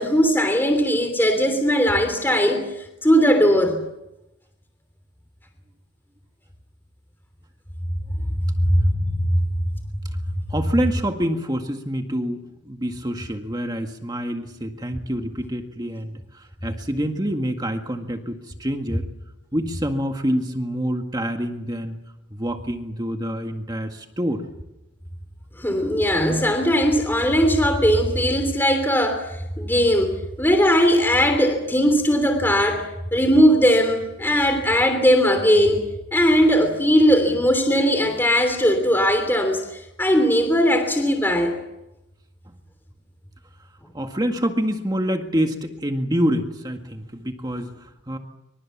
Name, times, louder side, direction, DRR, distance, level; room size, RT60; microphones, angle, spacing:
voice 1, 0.0-3.8 8.5-9.4 25.6-30.1 30.4-35.9 36.1-41.5, equal, 10° left, 6 dB, 3.1 m, -19 dB
voice 2, 10.5-19.1 19.5-22.0 22.3-24.5 42.5-42.6 43.9-48.2, equal, 20° right, 4 dB, 1.8 m, -26 dB
27.5 x 25.0 x 7.3 m, 0.92 s
head